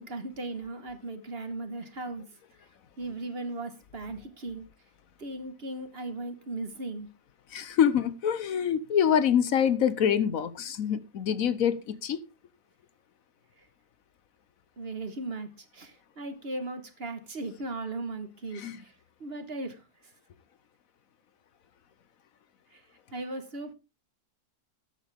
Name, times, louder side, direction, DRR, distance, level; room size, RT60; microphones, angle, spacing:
voice 1, 0.0-2.3 3.0-4.7 5.2-7.1 13.6-13.7 14.8-18.9 19.2-20.1 22.7-22.8 23.1-23.7, right 2 dB, 40° right, 1.5 m, -37 dB
voice 2, 7.5-12.2 18.5-18.8, left 8 dB, 70° left, 1.2 m, -25 dB
13.0 x 9.2 x 3.5 m
omnidirectional pair, 1.6 m